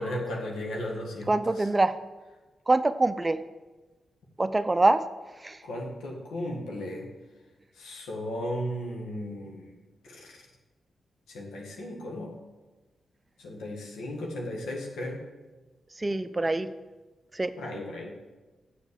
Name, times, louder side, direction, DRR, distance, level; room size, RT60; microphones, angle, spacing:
voice 1, 0.0-1.7 5.6-7.1 7.7-9.7 10.0-10.4 11.3-12.4 13.4-15.2 17.6-18.2, left 1 dB, 85° left, 0 dB, 1.7 m, -35 dB
voice 2, 1.3-2.0 2.7-3.4 4.4-5.0 5.4-5.6 16.0-16.7 17.3-17.5, right 2 dB, 25° right, 13 dB, 0.5 m, -24 dB
7.0 x 6.8 x 6.9 m, 1.2 s
supercardioid pair, 50°, 0 cm